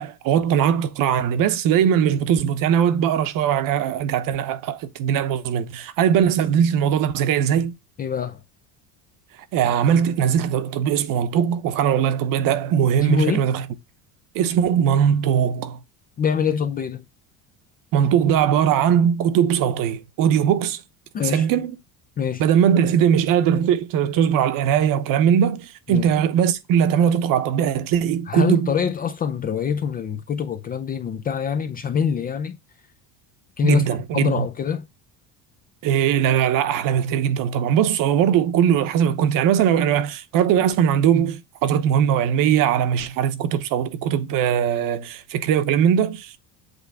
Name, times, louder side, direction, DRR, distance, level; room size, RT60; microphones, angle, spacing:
voice 1, 0.0-7.7 9.5-13.7 14.3-15.8 17.9-20.8 21.2-21.7 22.4-28.7 33.6-34.4 35.8-46.4, right 9 dB, 50° right, 0.9 m, -20 dB
voice 2, 8.0-8.4 13.0-13.5 16.2-17.0 21.1-21.5 22.2-22.4 25.9-26.1 28.3-32.6 33.6-34.9, left 7 dB, 20° left, 0.4 m, -24 dB
8.1 x 3.3 x 4.7 m
cardioid pair, 160°, 42 cm